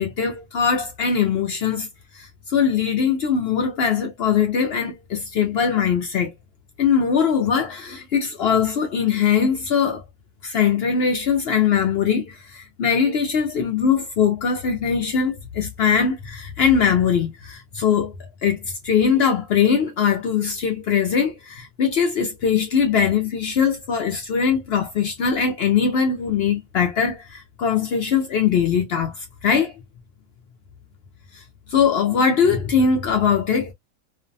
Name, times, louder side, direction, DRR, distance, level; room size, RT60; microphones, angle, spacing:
voice 1, 0.0-1.9 2.1-6.3 6.8-10.0 10.4-18.1 18.4-29.7 31.3-31.4 31.7-33.7, left 7 dB, 65° left, 0.6 m, -21 dB
2.5 x 2.1 x 2.5 m
omnidirectional pair, 1.4 m